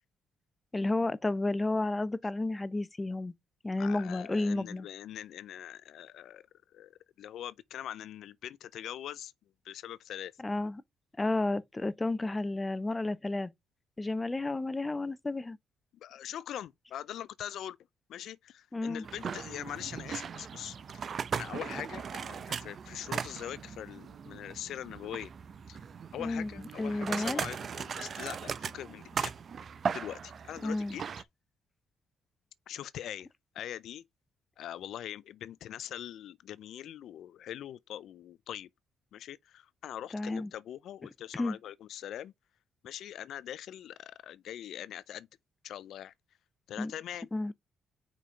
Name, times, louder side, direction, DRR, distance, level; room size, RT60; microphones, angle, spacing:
voice 1, 0.7-3.3 3.6-4.9 10.4-10.8 11.2-13.5 14.0-15.6 18.7-19.0 26.2-26.5 26.8-27.4 30.6-31.0 40.1-40.5 41.3-41.6 46.8-46.9 47.3-47.5, left 2 dB, 20° left, 0.6 m, -31 dB
voice 2, 3.8-6.4 6.7-9.3 9.6-10.3 15.9-17.8 18.1-20.8 21.3-25.3 25.7-25.8 26.1-29.3 29.9-31.0 32.7-33.3 33.5-34.0 34.6-38.7 39.1-42.3 42.8-45.3 45.6-46.1 46.7-47.5, left 11 dB, 75° left, 0.4 m, -42 dB
sound 1, 19.0-31.2, right 6 dB, 50° right, 0.7 m, -38 dB
5.1 x 4.9 x 5.6 m
cardioid pair, 90°, 0 cm